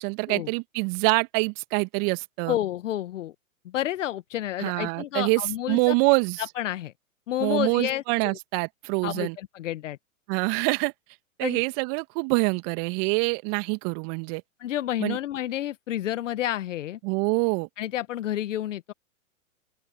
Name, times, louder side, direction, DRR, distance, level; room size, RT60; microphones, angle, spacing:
voice 1, 0.0-2.6 4.6-6.5 7.4-9.4 10.3-10.9 11.4-14.4 15.0-15.2 17.0-17.7, right 34 dB, 40° right, 2.2 m, -25 dB
voice 2, 2.5-3.3 3.6-5.9 6.6-6.9 7.3-8.4 9.0-10.0 11.4-11.6 14.6-17.0 17.8-18.9, left 12 dB, 60° left, 1.3 m, -30 dB
open air
figure-of-eight pair, 105°, 41 cm